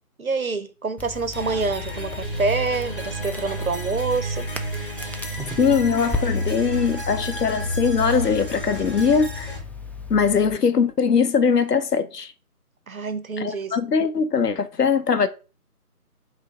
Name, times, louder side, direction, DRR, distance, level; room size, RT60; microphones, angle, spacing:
voice 1, 0.2-4.4 12.9-13.8, right 4 dB, 60° right, 0.7 m, -26 dB
Crackle, 1.0-10.6, left 3 dB, 5° left, 0.3 m, -36 dB
sound 1, 1.3-9.6, equal, 35° left, 1.0 m, -31 dB
voice 2, 5.6-9.6 10.1-12.3 13.4-15.3, left 6 dB, 85° left, 0.7 m, -21 dB
4.0 x 2.9 x 3.8 m
figure-of-eight pair, 165°, 46 cm